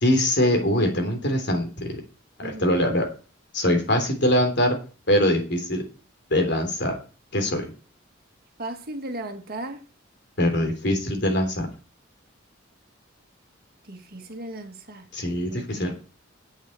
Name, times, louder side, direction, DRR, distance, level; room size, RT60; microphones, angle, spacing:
voice 1, 0.0-2.0 2.4-3.1 3.5-4.7 5.1-5.8 6.3-7.0 7.3-7.7 10.4-11.7 15.1-15.9, left 1 dB, 55° left, 3.4 m, -23 dB
voice 2, 2.4-2.7 8.6-9.8 13.9-15.9, right 1 dB, 45° right, 1.8 m, -37 dB
8.3 x 7.5 x 8.6 m
head